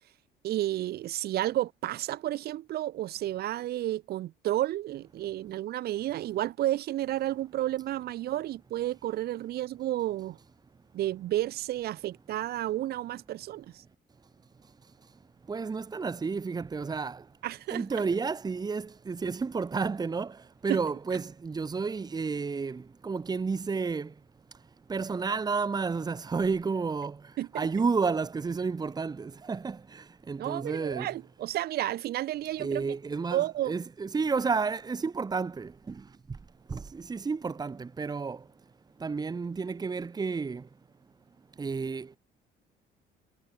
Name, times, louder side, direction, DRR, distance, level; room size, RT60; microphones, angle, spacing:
voice 1, 0.4-10.4 10.9-13.7 17.4-17.8 20.7-20.8 27.4-27.5 30.4-32.8 33.3-33.7, right 14 dB, 70° right, 2.1 m, -31 dB
voice 2, 15.5-17.2 17.7-24.1 24.9-27.2 27.5-31.1 32.6-36.0 36.7-38.4 39.0-40.6 41.6-42.2, right 4 dB, 25° right, 1.5 m, -31 dB
cardioid pair, 110°, 17 cm